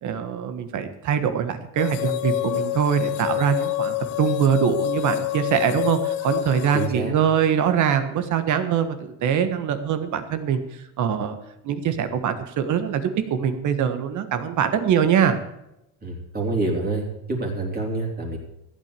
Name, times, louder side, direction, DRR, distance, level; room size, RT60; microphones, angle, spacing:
voice 1, 0.0-10.6 11.0-11.4 11.6-15.4, right 8 dB, 45° right, 10 dB, 1.5 m, -23 dB
sound 1, 1.8-6.9, left 15 dB, 80° left, 1.1 m, -27 dB
voice 2, 6.7-7.1 16.0-18.4, right 2 dB, 20° right, 0 dB, 3.5 m, -27 dB
14.5 x 9.0 x 6.9 m, 0.87 s
cardioid pair, 135°, 43 cm